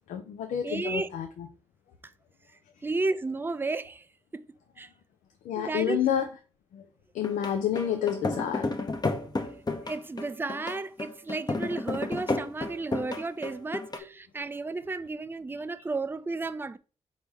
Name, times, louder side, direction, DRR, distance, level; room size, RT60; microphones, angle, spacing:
voice 1, 0.1-1.5 5.4-6.3 6.7-6.8 7.1-8.8, left 9 dB, 85° left, 0.4 m, -29 dB
voice 2, 0.6-1.1 2.0-2.1 2.5-4.1 4.3-4.5 4.8-4.9 5.6-6.0 9.8-16.8, right 3 dB, 15° right, 0.4 m, -33 dB
sound 1, 7.2-14.0, left 3 dB, 30° left, 0.8 m, -32 dB
4.1 x 3.0 x 3.4 m
supercardioid pair, 45°, 13 cm